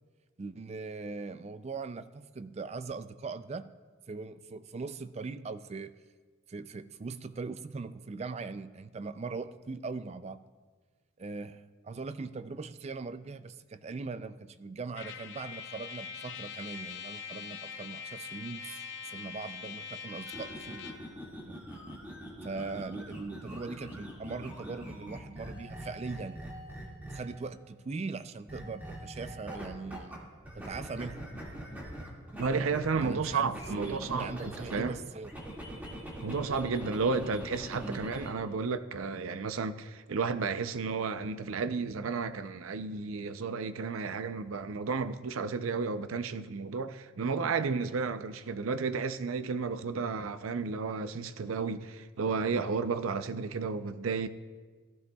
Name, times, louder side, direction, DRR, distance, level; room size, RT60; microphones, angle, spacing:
voice 1, 0.4-3.7 4.1-5.9 6.5-10.4 11.2-18.7 19.0-20.8 21.4-21.6 22.4-26.5 27.1-30.3 30.6-31.2 33.0-35.3 37.7-38.0, right 4 dB, 30° right, 0.4 m, -40 dB
Trumpet, 14.9-21.1, left 6 dB, 60° left, 0.7 m, -43 dB
sound 1, 20.3-27.5 28.5-30.2 30.4-34.9 35.2-38.3, equal, 10° right, 2.0 m, -43 dB
voice 2, 32.4-35.0 36.2-54.3, right 4 dB, 90° right, 0.5 m, -32 dB
15.0 x 14.5 x 2.3 m
head